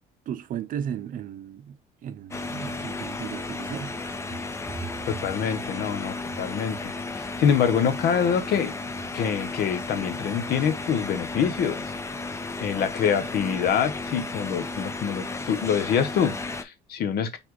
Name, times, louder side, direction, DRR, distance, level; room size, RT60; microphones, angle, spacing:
voice 1, 0.3-1.8 2.0-4.0, right 9 dB, 50° right, 0.5 m, -35 dB
sound 1, 2.3-16.6, left 3 dB, 15° left, 0.5 m, -34 dB
sound 2, 4.1-7.0 8.3-8.6 8.9-9.3, right 5 dB, ahead, 1.0 m, -44 dB
voice 2, 5.1-8.7 9.1-11.8 12.6-17.4, left 7 dB, 70° left, 0.9 m, -25 dB
4.1 x 3.4 x 3.1 m
cardioid pair, 110°, 17 cm